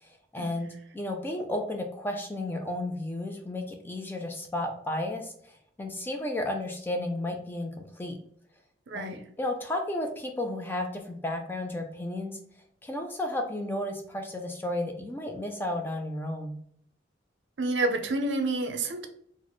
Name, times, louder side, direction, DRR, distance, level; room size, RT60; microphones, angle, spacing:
voice 1, 0.0-8.2 8.9-12.4 12.8-16.6, left 1 dB, 10° left, 4 dB, 0.3 m, -33 dB
voice 2, 8.9-9.2 17.6-19.1, right 2 dB, 70° right, 6 dB, 0.5 m, -29 dB
3.9 x 2.0 x 3.0 m, 0.65 s
head